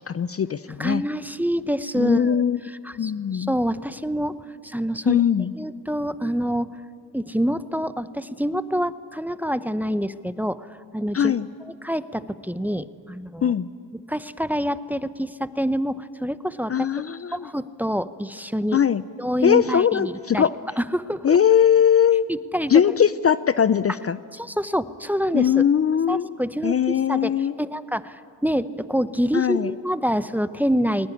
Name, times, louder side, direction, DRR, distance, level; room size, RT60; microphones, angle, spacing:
voice 1, 0.1-1.0 2.0-2.6 3.0-3.5 5.1-5.5 11.1-11.5 13.4-13.7 16.7-17.5 18.7-19.0 19.4-20.5 21.2-22.2 22.7-24.2 25.3-26.3 26.6-27.5 29.3-29.7, left 8 dB, 35° left, 15 dB, 0.6 m, -20 dB
voice 2, 0.8-4.4 4.6-5.2 5.6-6.7 7.1-11.3 11.6-13.5 13.9-16.7 17.3-18.8 19.2-20.5 20.8-21.4 22.3-22.8 24.3-25.6 26.1-31.1, equal, 5° right, 13 dB, 0.8 m, -26 dB
20.0 x 19.5 x 10.0 m, 2.4 s
supercardioid pair, 60°, 42 cm